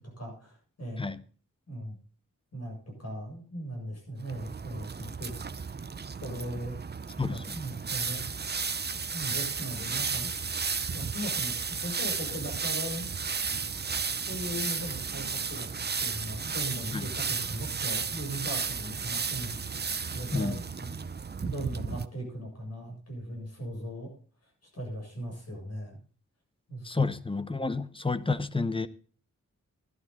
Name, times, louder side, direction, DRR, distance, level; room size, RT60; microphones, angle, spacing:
voice 1, 0.2-1.0 1.7-2.0 2.5-5.3 5.6-5.8 6.2-6.8 7.3-8.2 9.1-10.3 10.9-13.1 14.3-15.7 16.0-19.5 20.1-21.1 21.4-24.1 24.7-26.0 26.7-27.0, right 1 dB, 55° left, 7.9 m, -38 dB
sound 1, 4.2-22.0, right 5 dB, 35° right, 0.6 m, -33 dB
voice 2, 7.2-7.6 16.9-17.0 20.3-20.6 26.8-28.9, left 3 dB, 15° left, 0.8 m, -30 dB
13.0 x 11.5 x 4.1 m
wide cardioid pair, 120°, 31 cm